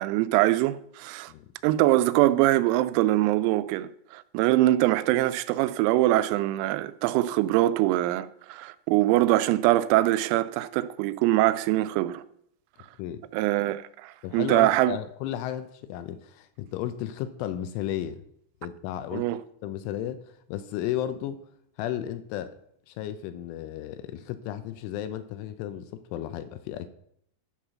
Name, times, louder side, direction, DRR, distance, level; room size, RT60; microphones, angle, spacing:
voice 1, 0.0-1.3 1.6-12.2 13.3-15.0 19.1-19.4, right 16 dB, 90° right, 3.3 m, -23 dB
voice 2, 14.2-18.2 18.6-19.3 19.6-20.2 20.5-21.4 21.8-22.6 22.9-26.9, left 11 dB, 85° left, 2.8 m, -34 dB
11.5 x 5.7 x 6.1 m
omnidirectional pair, 6.0 m